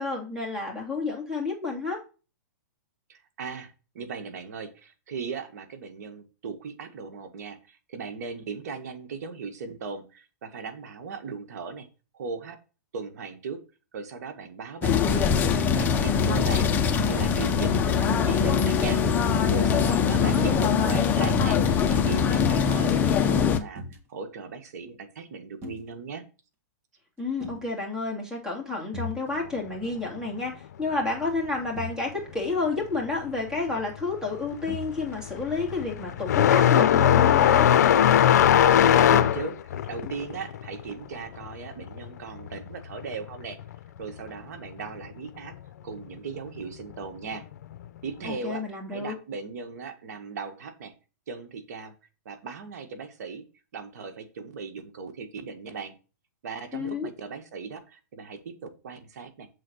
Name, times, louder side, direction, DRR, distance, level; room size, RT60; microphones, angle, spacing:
voice 1, 0.0-2.0 19.9-20.9 27.2-37.7 48.2-49.2 56.7-57.1, left 3 dB, 5° right, -1 dB, 2.9 m, -30 dB
voice 2, 3.1-11.9 12.1-12.6 12.9-13.6 13.9-19.0 19.5-23.8 24.1-26.2 38.4-43.6 44.0-45.5 45.8-47.5 48.0-48.6 48.9-50.9 51.3-51.9 52.3-53.4 53.7-55.9 56.4-59.5, right 5 dB, 65° right, 6 dB, 1.8 m, -38 dB
sound 1, 14.8-23.6, left 6 dB, 20° left, 0.8 m, -22 dB
sound 2, 23.8-24.0 25.6-25.9 27.4-27.7 28.9-29.2 29.5-29.8 30.2-30.3 31.8-32.0 34.7-35.3 37.0-37.5 38.4-38.5 40.0-40.2, left 2 dB, 25° right, 1.8 m, -39 dB
sound 3, 33.7-34.0 34.3-42.6 42.9-44.0 45.0-45.1 45.9-46.0 47.7-47.8, left 10 dB, 65° left, 0.6 m, -20 dB
7.5 x 4.0 x 6.4 m, 0.33 s
hypercardioid pair, 145°, 10 cm